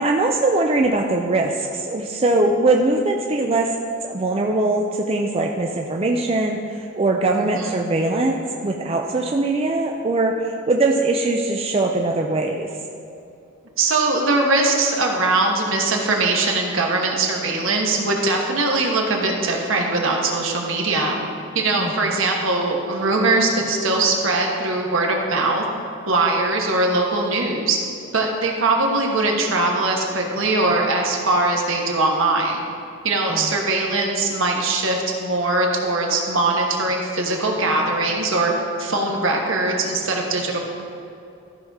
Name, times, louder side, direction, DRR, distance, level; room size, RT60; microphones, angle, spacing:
voice 1, 0.0-3.7 4.0-12.7 21.8-22.2 33.3-33.6, right 2 dB, 30° right, 1 dB, 0.4 m, -21 dB
voice 2, 7.3-7.7 13.8-21.2 21.5-25.6 26.1-27.8 28.1-32.6 33.0-38.5 38.8-40.6, right 2 dB, 65° right, 0 dB, 1.2 m, -21 dB
13.5 x 5.6 x 3.6 m, 2.7 s
head